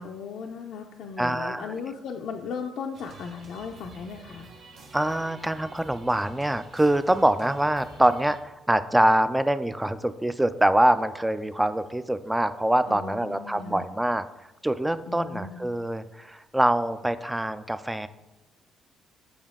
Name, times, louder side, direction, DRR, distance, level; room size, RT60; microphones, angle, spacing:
voice 1, 0.0-4.5 12.9-13.9 15.1-15.6, left 5 dB, 75° left, 3 dB, 0.5 m, -36 dB
voice 2, 1.2-1.7 4.9-14.3 14.6-18.1, right 1 dB, 10° right, 12 dB, 0.3 m, -24 dB
sound 1, 2.9-8.4, right 3 dB, 65° right, 1.0 m, -48 dB
7.1 x 4.9 x 3.6 m, 1.1 s
cardioid pair, 90°, 0 cm